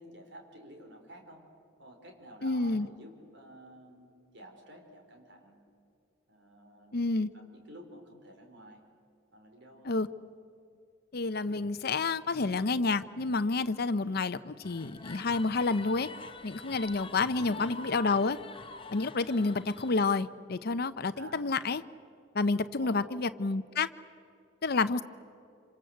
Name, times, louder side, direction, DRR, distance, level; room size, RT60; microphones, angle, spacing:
voice 1, 0.0-1.4 1.8-5.6 6.3-8.8 9.3-10.0 17.4-17.7 19.3-19.7 21.1-21.6 22.8-23.2, equal, 65° right, 3 dB, 4.6 m, -51 dB
voice 2, 2.4-2.9 6.9-7.3 9.8-10.1 11.1-16.1 16.4-18.4 18.9-21.8 22.3-23.9 24.6-25.0, left 3 dB, 55° left, 12 dB, 0.7 m, -29 dB
sound 1, 14.6-20.2, left 3 dB, 30° left, 1.0 m, -46 dB
26.5 x 26.0 x 8.0 m, 2.5 s
head